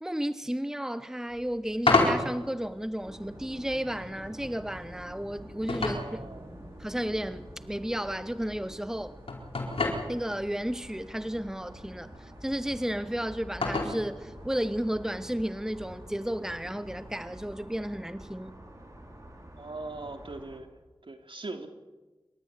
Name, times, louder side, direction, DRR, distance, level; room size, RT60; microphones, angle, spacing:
voice 1, 0.0-6.2 6.8-9.2 10.1-18.5, equal, 5° right, 1.0 m, -33 dB
sound 1, 1.3-17.6, left 3 dB, 85° left, 4.6 m, -34 dB
sound 2, 3.0-20.6, right 1 dB, 35° right, 5.5 m, -48 dB
voice 2, 5.8-6.5 19.6-20.7 21.0-21.7, right 2 dB, 65° right, 2.8 m, -40 dB
27.0 x 13.0 x 9.7 m
cardioid pair, 40°, 9 cm